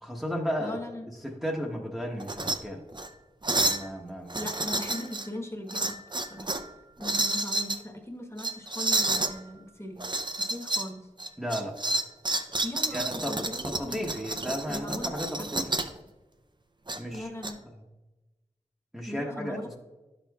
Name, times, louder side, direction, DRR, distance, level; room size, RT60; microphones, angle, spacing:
voice 1, 0.0-0.8 1.2-2.8 3.5-4.5 11.4-11.8 12.9-15.6 17.0-17.3 18.9-19.8, equal, 5° right, -2 dB, 0.9 m, -34 dB
voice 2, 0.6-1.1 4.3-6.5 7.0-10.1 10.5-11.0 12.6-14.1 14.7-15.7 17.1-17.6 19.1-19.8, left 1 dB, 20° left, 2 dB, 1.1 m, -39 dB
sound 1, 2.2-2.6 2.9-3.1 3.4-3.9 4.3-5.3 5.7-6.7 7.0-7.8 8.4-9.3 10.0-10.9 11.2-16.0 16.9-17.5, right 2 dB, 35° right, 0.6 m, -30 dB
11.0 x 6.3 x 2.3 m, 1.1 s
wide cardioid pair, 40°, 13 cm